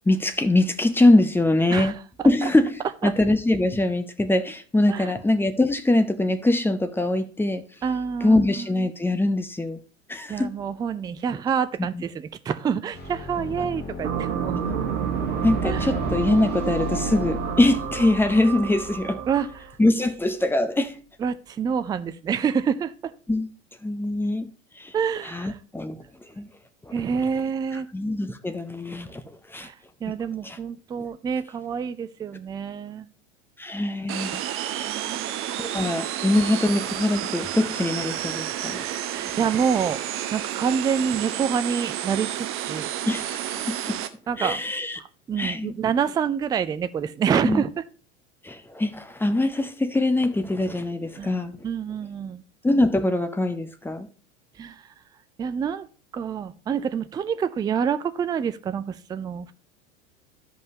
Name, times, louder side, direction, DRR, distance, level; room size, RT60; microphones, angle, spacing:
voice 1, 0.1-2.0 2.2-7.6 8.2-9.8 10.1-10.5 11.8-12.0 13.6-13.7 14.5-14.8 15.4-19.2 19.8-21.0 23.3-23.5 23.8-24.5 24.8-24.9 25.2-26.0 26.4-26.5 26.9-27.0 27.9-29.2 29.5-29.7 30.4-30.6 33.6-34.4 35.6-38.9 43.1-44.0 44.4-45.0 45.4-45.7 47.4-47.6 48.4-51.6 52.6-54.1, left 2 dB, 5° left, 0.8 m, -23 dB
voice 2, 7.8-8.7 10.3-14.6 15.6-15.9 19.3-19.5 21.2-23.1 24.9-25.6 26.9-27.9 29.6-29.7 30.0-33.1 34.9-35.5 39.1-40.0 40.3-42.9 44.3-44.6 45.0-47.8 51.2-51.3 51.6-52.4 54.6-54.8 55.4-55.9 56.1-59.5, right 7 dB, 10° right, 0.4 m, -27 dB
sound 1, 12.9-19.6, left 4 dB, 25° left, 2.9 m, -36 dB
sound 2, 14.0-19.7, right 8 dB, 70° right, 1.3 m, -29 dB
sound 3, 34.1-44.1, right 11 dB, 35° right, 0.9 m, -31 dB
13.5 x 5.3 x 2.8 m
figure-of-eight pair, 80°, 37 cm